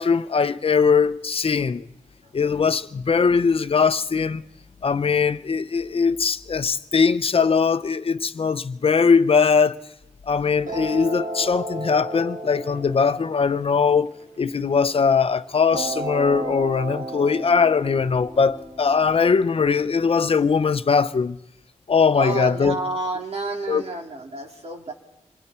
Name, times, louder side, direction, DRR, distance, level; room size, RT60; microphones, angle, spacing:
voice 1, 0.0-1.8 2.3-4.4 4.8-9.7 10.3-14.1 14.4-21.4 21.9-22.8 23.7-23.8, left 5 dB, 45° left, 0.7 m, -20 dB
sound 1, 10.7-15.0 15.7-20.7, right 2 dB, 85° right, 5.3 m, -34 dB
voice 2, 22.1-24.9, right 3 dB, 55° right, 3.1 m, -30 dB
27.5 x 22.5 x 4.4 m
wide cardioid pair, 115°, 13 cm